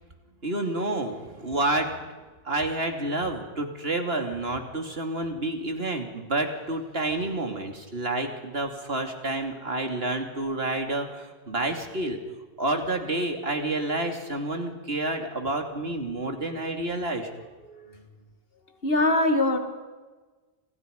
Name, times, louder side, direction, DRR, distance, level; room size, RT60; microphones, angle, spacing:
voice 1, 0.4-1.9 2.4-12.2 12.6-17.3, right 2 dB, 70° right, 4 dB, 3.2 m, -29 dB
voice 2, 17.7-18.0 18.8-19.6, left 2 dB, 65° left, 6 dB, 2.7 m, -23 dB
30.0 x 26.5 x 5.4 m, 1.3 s
omnidirectional pair, 1.1 m